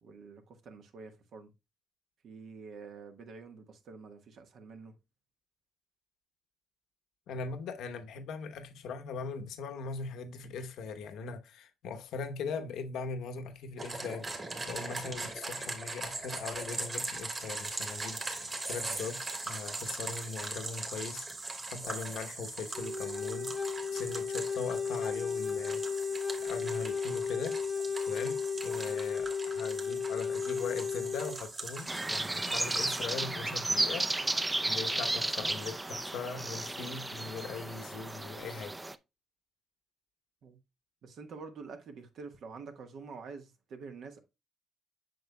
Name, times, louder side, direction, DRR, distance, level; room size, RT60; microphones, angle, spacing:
voice 1, 0.0-1.5 2.2-4.9 28.8-29.0 40.4-40.6 41.0-44.2, right 4 dB, 70° right, 1.3 m, -47 dB
voice 2, 7.3-25.8 26.4-27.6 28.1-28.4 28.6-34.1 34.7-38.8, left 5 dB, 85° left, 0.9 m, -40 dB
sound 1, 13.8-33.1, right 2 dB, 30° right, 2.2 m, -40 dB
Wind instrument woodwind instrument, 22.7-31.4, left 6 dB, 5° left, 1.0 m, -34 dB
sound 2, 31.9-39.0, right 2 dB, 15° right, 0.5 m, -33 dB
7.8 x 6.3 x 2.2 m
cardioid pair, 90°, 0 cm